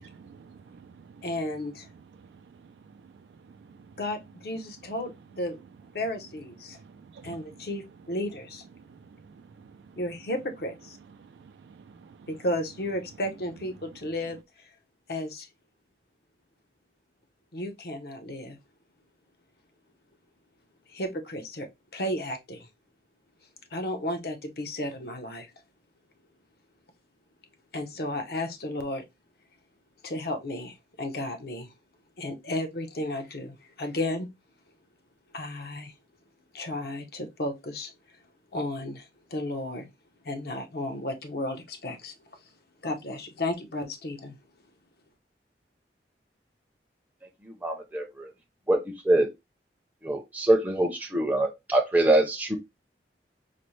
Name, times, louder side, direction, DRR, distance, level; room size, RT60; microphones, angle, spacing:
voice 1, 0.0-1.3 2.2-4.0 6.7-7.7 8.8-10.0 11.2-12.3, right 5 dB, 80° right, 0.3 m, -52 dB
voice 2, 1.2-1.9 4.0-5.6 5.9-6.8 7.2-8.6 10.0-11.0 12.3-14.7 15.1-15.5 17.5-18.6 20.9-22.7 23.7-25.5 27.7-29.0 30.0-31.7 32.2-34.3 35.3-35.9 36.5-37.9 38.5-39.9 40.2-42.1 42.8-44.4, left 1 dB, 60° left, 0.7 m, -33 dB
voice 3, 47.6-48.3 48.7-48.8 49.0-49.3 50.0-52.6, right 1 dB, 10° right, 0.5 m, -24 dB
4.1 x 2.0 x 3.0 m
head